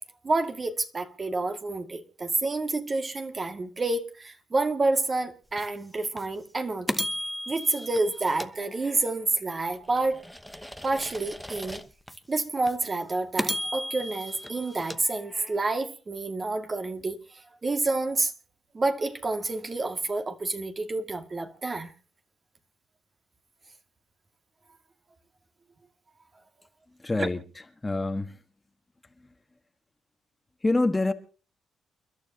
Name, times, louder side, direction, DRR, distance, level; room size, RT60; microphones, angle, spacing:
voice 1, 0.2-7.0 7.5-10.2 10.8-11.8 12.3-18.3 18.7-21.9 27.2-27.3, right 3 dB, 30° right, 2.1 m, -29 dB
sound 1, 5.6-5.7 6.2-6.3 6.9-9.2 9.7-12.2 12.7-12.8 13.4-15.7, equal, ahead, 1.0 m, -36 dB
voice 2, 27.0-28.4 29.2-29.3 30.6-31.1, left 2 dB, 15° left, 1.4 m, -27 dB
29.5 x 12.0 x 2.8 m
cardioid pair, 95°, 0 cm